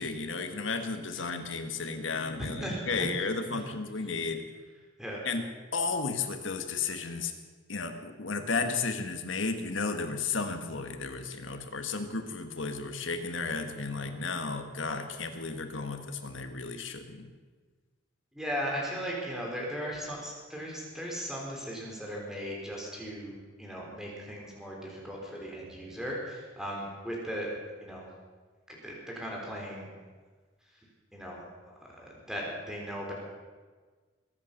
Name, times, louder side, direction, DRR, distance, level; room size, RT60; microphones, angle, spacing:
voice 1, 0.0-4.4 5.2-5.5 5.7-7.3 7.7-17.3, left 4 dB, 75° left, 6 dB, 1.6 m, -33 dB
voice 2, 2.4-3.1 3.5-3.6 5.0-5.2 18.3-27.5 27.8-28.1 28.7-29.9 31.1-31.4 31.8-33.1, equal, 5° right, -3 dB, 3.8 m, -37 dB
22.0 x 8.9 x 6.7 m, 1.4 s
head